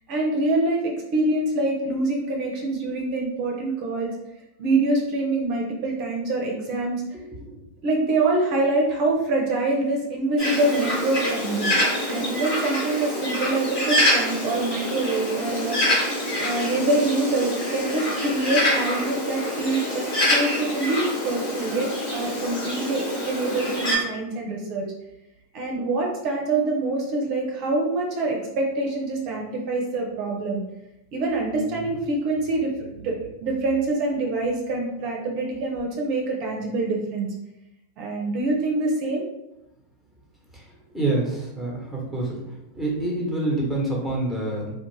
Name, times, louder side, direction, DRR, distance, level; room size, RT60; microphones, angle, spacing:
voice 1, 0.1-4.1 4.6-7.0 7.8-11.8 12.1-16.0 16.4-24.9 25.5-30.6 31.1-37.3 38.0-39.2, right 2 dB, 50° right, -1 dB, 0.6 m, -25 dB
voice 2, 7.1-7.5 40.9-42.4 42.7-44.7, right 2 dB, 5° left, -3 dB, 1.0 m, -26 dB
Bird, 10.4-24.0, equal, 50° left, 1.3 m, -26 dB
2.5 x 2.1 x 3.1 m, 0.90 s
hypercardioid pair, 100°, 0 cm